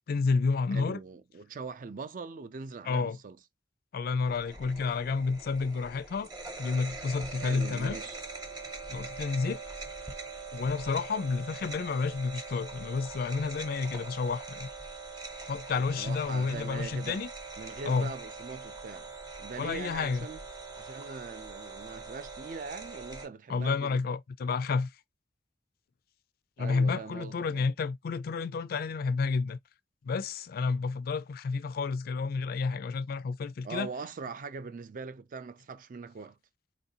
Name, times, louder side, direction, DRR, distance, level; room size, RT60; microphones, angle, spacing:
voice 1, 0.1-1.0 2.9-3.2 3.9-6.3 6.6-8.0 8.9-9.6 10.5-14.7 15.4-17.3 17.8-18.1 19.6-20.3 23.5-24.9 26.6-29.6 30.0-33.9, left 4 dB, 55° left, 0.3 m, -30 dB
voice 2, 0.7-3.4 7.4-8.2 16.0-17.2 17.6-19.1 19.4-20.4 20.8-24.0 26.6-27.7 33.6-36.4, right 4 dB, 50° right, 0.4 m, -41 dB
sound 1, 4.3-23.3, right 3 dB, 20° right, 0.9 m, -43 dB
3.8 x 2.5 x 2.7 m
head